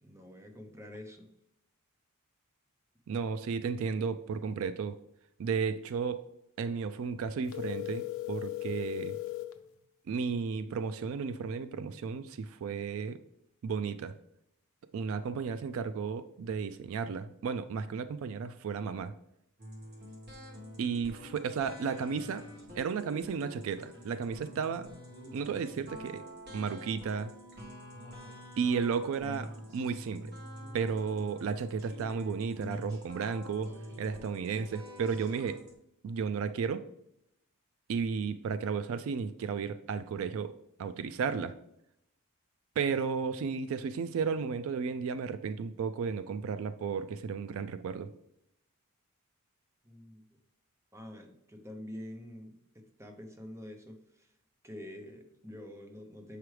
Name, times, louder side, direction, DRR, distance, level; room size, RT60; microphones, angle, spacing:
voice 1, 0.0-1.3 49.8-50.2 50.9-54.3 54.6-56.4, left 1 dB, 15° right, 4 dB, 0.7 m, -47 dB
voice 2, 3.1-5.0 5.4-6.2 6.6-9.2 10.1-13.2 13.6-14.1 14.9-19.1 20.8-22.5 22.7-24.9 25.3-26.2 26.5-27.3 28.6-30.3 30.7-33.7 34.0-35.6 36.0-36.9 37.9-40.5 40.8-41.6 42.8-48.1, right 6 dB, 65° right, 11 dB, 0.3 m, -33 dB
sound 1, 7.5-9.6, left 16 dB, 65° left, 0.5 m, -37 dB
sound 2, 19.6-35.7, equal, 50° right, 1.4 m, -47 dB
6.8 x 4.8 x 3.2 m, 0.78 s
head